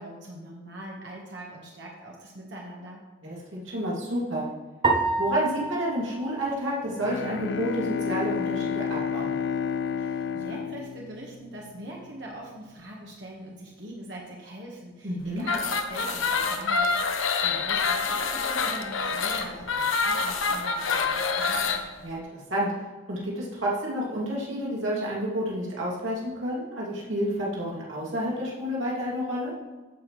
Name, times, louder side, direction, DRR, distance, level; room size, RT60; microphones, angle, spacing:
voice 1, 0.0-3.0 10.0-21.8, right 1 dB, 65° right, -2 dB, 1.5 m, -42 dB
voice 2, 3.2-4.5 5.2-9.4 15.0-15.4 22.0-22.7 23.1-29.5, equal, 85° right, -5 dB, 2.7 m, -30 dB
sound 1, 4.8-7.3, right 2 dB, 25° right, 0.7 m, -29 dB
Bowed string instrument, 6.9-11.8, left 7 dB, 60° left, 0.3 m, -31 dB
sound 2, 15.4-21.8, left 4 dB, 85° left, 0.9 m, -26 dB
15.0 x 5.9 x 3.2 m, 1.3 s
head